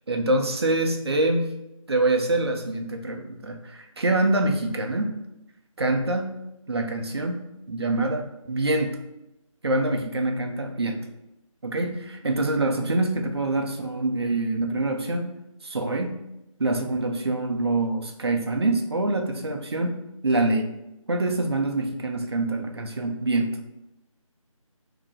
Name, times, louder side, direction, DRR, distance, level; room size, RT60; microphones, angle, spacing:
voice 1, 0.1-1.5 1.9-5.1 5.8-6.3 6.7-7.4 7.7-9.0 9.6-11.0 11.6-15.3 15.6-16.2 16.6-20.7 21.1-23.6, right 2 dB, 50° right, 3 dB, 0.5 m, -25 dB
3.3 x 2.8 x 3.6 m, 0.90 s
figure-of-eight pair, 170°, 18 cm